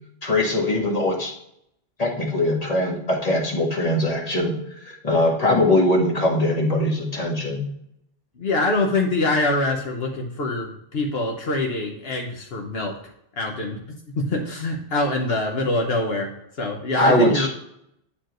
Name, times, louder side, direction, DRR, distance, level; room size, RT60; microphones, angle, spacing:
voice 1, 0.2-1.3 2.0-7.6 17.0-17.5, left 1 dB, 35° left, -1 dB, 1.8 m, -21 dB
voice 2, 8.4-13.0 13.4-17.5, left 2 dB, 75° left, 1 dB, 1.3 m, -24 dB
9.7 x 4.5 x 3.0 m, 0.74 s
omnidirectional pair, 1.0 m